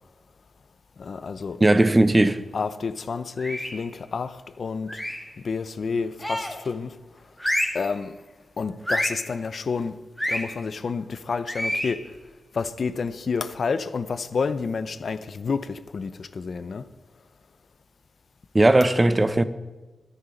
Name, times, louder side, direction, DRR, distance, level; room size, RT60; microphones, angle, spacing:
voice 1, 1.0-1.6 2.5-5.0 5.4-6.9 7.7-8.2 8.6-10.0 10.3-12.0 12.5-16.9, left 5 dB, 65° left, 0.7 m, -29 dB
voice 2, 1.6-2.4 18.5-19.4, right 2 dB, 25° right, 0.7 m, -17 dB
sound 1, 3.4-3.9 4.9-5.3 6.2-6.7 7.4-7.9 8.9-9.3 10.2-10.5 11.5-12.0, equal, 5° left, 1.9 m, -28 dB
13.0 x 9.8 x 5.2 m
cardioid pair, 65°, 0 cm